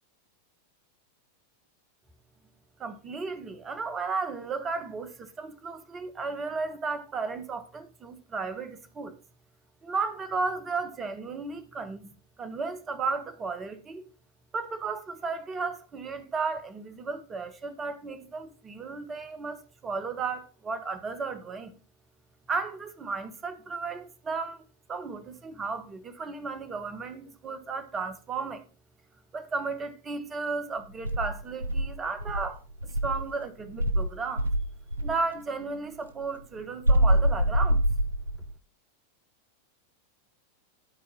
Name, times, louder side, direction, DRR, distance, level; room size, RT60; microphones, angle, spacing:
voice 1, 2.8-9.2 9.8-12.1 12.4-14.0 14.5-21.7 22.5-24.6 24.9-28.6 29.3-32.6 33.0-34.5 35.0-37.8, right 4 dB, 25° right, 1.4 m, -34 dB
Insect, 31.0-33.3 33.8-35.2 36.8-38.5, right 1 dB, 80° right, 1.0 m, -25 dB
11.5 x 4.4 x 5.5 m
figure-of-eight pair, 90°, 0 cm